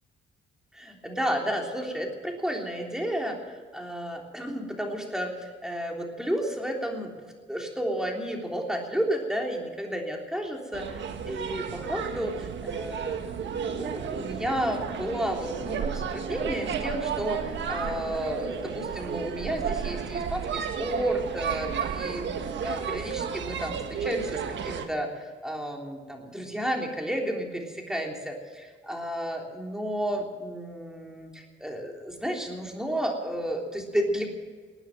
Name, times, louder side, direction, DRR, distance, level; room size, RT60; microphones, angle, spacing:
voice 1, 0.7-7.1 7.5-13.2 13.6-22.3 22.6-34.3, equal, 5° right, 1 dB, 3.4 m, -32 dB
sound 1, 10.7-24.9, right 7 dB, 65° right, 1.5 m, -33 dB
19.5 x 9.4 x 7.6 m, 1.5 s
cardioid pair, 90°, 20 cm